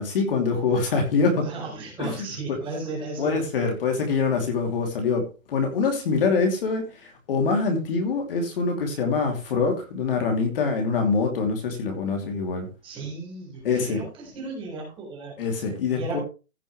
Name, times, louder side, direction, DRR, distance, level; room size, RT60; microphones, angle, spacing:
voice 1, 0.0-1.5 2.0-2.6 3.2-12.7 13.6-14.0 15.4-16.2, left 4 dB, 40° left, 2.8 m, -25 dB
voice 2, 1.4-3.4 12.8-15.4 15.9-16.2, right 3 dB, 10° right, 4.2 m, -35 dB
16.0 x 7.6 x 3.2 m
hypercardioid pair, 160°, 42 cm